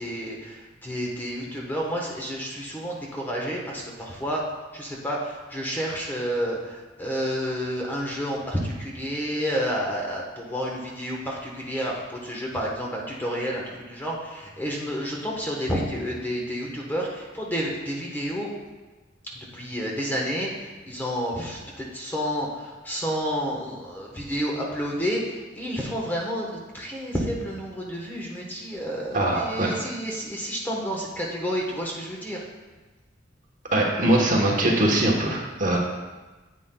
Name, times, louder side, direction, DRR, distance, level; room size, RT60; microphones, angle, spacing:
voice 1, 0.0-4.4 4.7-18.5 19.5-32.4 35.7-35.8, equal, 10° left, -2 dB, 1.2 m, -30 dB
voice 2, 29.1-29.7 33.7-35.8, right 1 dB, 40° right, -1 dB, 1.2 m, -22 dB
9.6 x 8.3 x 2.3 m, 1.2 s
head